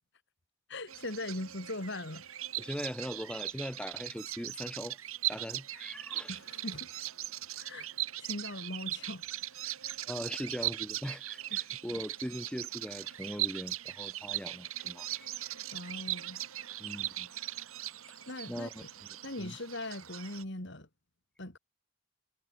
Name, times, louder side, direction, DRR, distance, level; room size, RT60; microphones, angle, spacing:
voice 1, 0.7-2.3 6.3-7.0 7.6-7.9 8.2-9.3 11.5-11.6 15.7-16.4 18.3-18.7 19.2-20.9 21.4-21.6, left 1 dB, 55° left, 3.1 m, -40 dB
Bird vocalization bird call bird song, 0.9-20.4, right 14 dB, 80° right, 1.9 m, -39 dB
voice 2, 2.6-5.0 5.2-6.4 10.1-15.3 16.8-17.3 18.5-18.8 19.4-19.6, equal, 5° left, 1.7 m, -40 dB
head